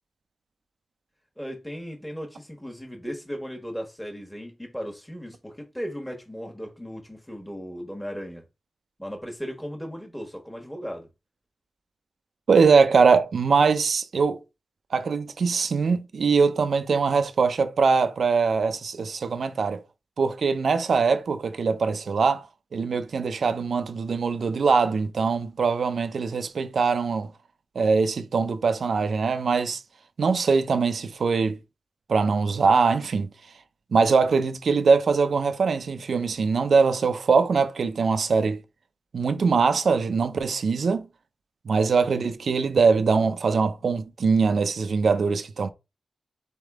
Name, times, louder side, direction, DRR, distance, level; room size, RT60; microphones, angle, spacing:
voice 1, 1.4-8.5 9.0-11.1, equal, 5° left, 1.2 m, -36 dB
voice 2, 12.5-14.4 14.9-19.8 20.2-22.5 22.7-27.3 27.8-29.8 30.2-31.6 32.1-33.3 33.9-38.6 39.1-41.1 41.7-45.7, right 5 dB, 80° right, 0.5 m, -22 dB
3.8 x 3.6 x 3.6 m
cardioid pair, 55°, 0 cm